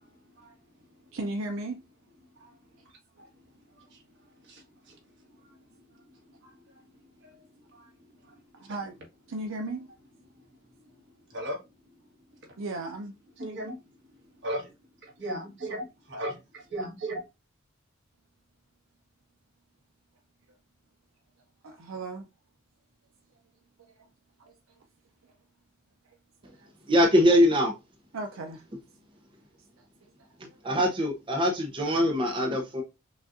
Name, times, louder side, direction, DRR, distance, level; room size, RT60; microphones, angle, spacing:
voice 1, 0.0-1.2 2.2-8.8 10.2-12.6 13.4-17.3, right 1 dB, 55° right, 1.6 m, -41 dB
voice 2, 1.1-1.8 8.6-9.0 9.3-9.9 12.6-13.1 21.6-22.3 23.8-23.9 24.4-24.9 25.2-25.3 26.1-26.2 26.5-26.7 28.1-28.6 29.8-30.6, right 2 dB, 75° right, 0.5 m, -37 dB
voice 3, 26.9-27.7 30.4-32.8, equal, 25° right, 0.6 m, -23 dB
6.1 x 2.4 x 2.6 m
head